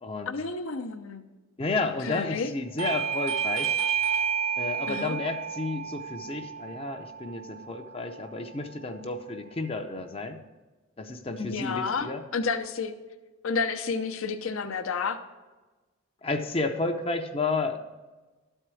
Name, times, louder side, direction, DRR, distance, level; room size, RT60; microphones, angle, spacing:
voice 1, 0.3-1.2 2.0-2.5 4.9-5.2 11.4-12.9 13.4-15.2, left 4 dB, 70° left, 7 dB, 0.7 m, -30 dB
voice 2, 1.6-3.8 4.6-10.4 11.0-12.2 16.2-17.8, left 3 dB, 25° left, 5 dB, 0.6 m, -31 dB
Bell / Doorbell, 2.8-8.0, right 7 dB, 60° right, 0.6 m, -30 dB
12.5 x 4.5 x 6.1 m, 1.2 s
head